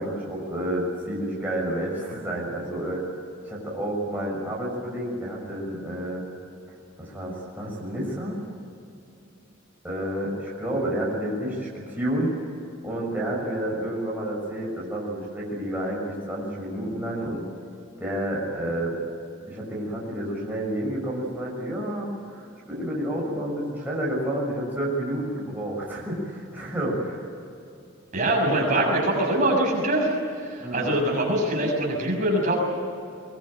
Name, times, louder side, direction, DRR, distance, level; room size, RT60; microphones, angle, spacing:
voice 1, 0.0-3.0 3.5-6.2 7.0-8.5 9.8-12.3 12.8-17.4 18.0-18.9 19.5-27.2 30.6-31.0, right 1 dB, 10° right, -4 dB, 6.5 m, -30 dB
voice 2, 28.1-30.1 30.4-32.6, right 1 dB, 35° right, -1 dB, 6.7 m, -23 dB
24.0 x 21.0 x 9.0 m, 2.6 s
head